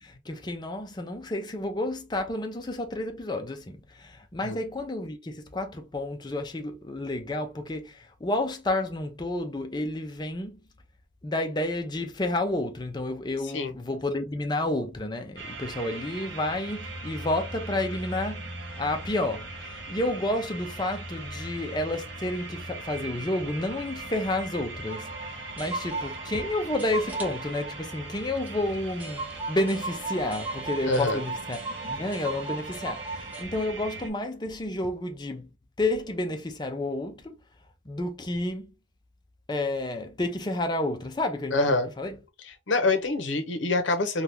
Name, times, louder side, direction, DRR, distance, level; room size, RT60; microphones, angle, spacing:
voice 1, 0.0-10.6 11.2-18.4 18.8-35.5 35.8-37.4 37.9-38.7 39.5-42.2, left 1 dB, 20° left, 0.5 m, -30 dB
sound 1, 15.4-34.1, right 2 dB, 60° right, 0.8 m, -40 dB
sound 2, 24.9-33.4, right 3 dB, 10° right, 0.7 m, -37 dB
voice 2, 30.9-31.2 41.5-41.9 42.7-44.2, left 2 dB, 70° left, 0.7 m, -25 dB
2.8 x 2.3 x 3.3 m
head